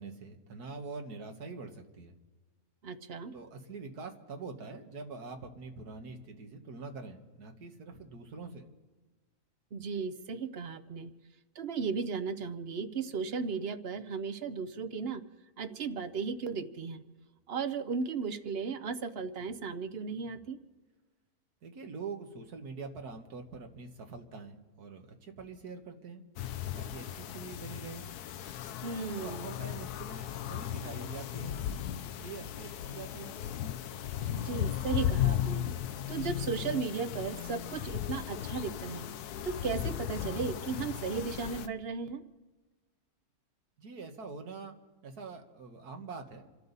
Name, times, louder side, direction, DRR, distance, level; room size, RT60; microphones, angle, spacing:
voice 1, 0.0-2.1 3.3-8.7 21.6-26.2 26.7-28.1 29.2-31.6 32.2-33.3 43.8-44.8 45.0-46.7, right 4 dB, 85° right, 4 dB, 2.0 m, -44 dB
voice 2, 2.8-3.3 9.7-11.1 11.6-15.2 15.6-17.0 17.5-20.6 28.8-29.5 34.3-35.6 36.1-39.1 39.4-42.2, right 5 dB, 50° right, 12 dB, 0.9 m, -35 dB
sound 1, 26.4-41.7, left 11 dB, 90° left, 1.2 m, -36 dB
27.5 x 12.5 x 4.1 m, 1.3 s
omnidirectional pair, 1.6 m